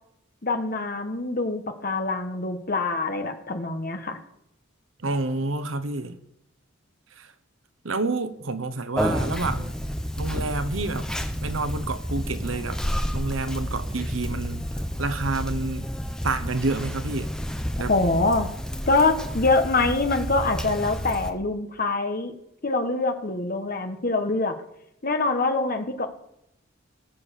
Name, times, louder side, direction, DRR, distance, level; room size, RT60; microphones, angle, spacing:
voice 1, 0.4-4.2 17.9-18.5 18.9-22.3 22.6-24.5 25.0-26.1, left 3 dB, 45° left, 1.4 m, -24 dB
voice 2, 5.0-6.2 7.2-7.3 7.8-9.7 10.2-11.1 11.4-12.8 13.1-14.7 15.0-15.9 16.2-17.3 17.8-17.9, right 3 dB, 70° right, 1.0 m, -28 dB
Conversation, 9.0-21.3, equal, 5° left, 0.7 m, -30 dB
17.5 x 7.5 x 6.5 m
head